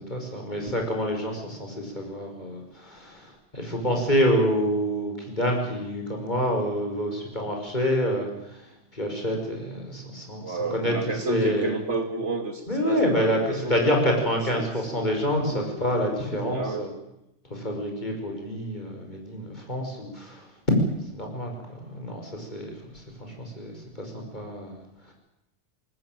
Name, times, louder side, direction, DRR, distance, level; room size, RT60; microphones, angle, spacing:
voice 1, 0.0-8.7 8.9-10.9 11.3-11.7 12.7-16.9 17.5-20.5 21.1-25.1, equal, 35° left, 2 dB, 5.4 m, -27 dB
voice 2, 10.1-15.2 15.5-15.7 16.3-16.9, right 3 dB, 65° right, 5 dB, 3.2 m, -31 dB
21.5 x 18.5 x 9.2 m, 0.87 s
omnidirectional pair, 1.3 m